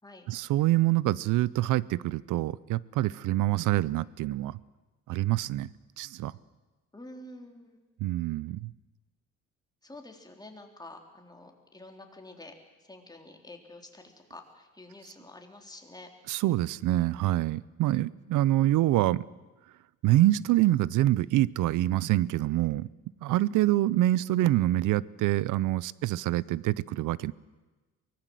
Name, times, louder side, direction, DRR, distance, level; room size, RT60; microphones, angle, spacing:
voice 1, 0.3-4.6 5.1-5.7 6.0-6.3 8.0-8.7 16.3-19.3 20.0-22.9 23.2-27.3, right 15 dB, 85° right, 21 dB, 0.6 m, -26 dB
voice 2, 6.9-7.8 9.8-12.5 12.8-16.1 18.0-18.1, left 2 dB, 15° left, 3 dB, 3.6 m, -48 dB
24.0 x 19.0 x 7.7 m, 1.2 s
cardioid pair, 90°, 30 cm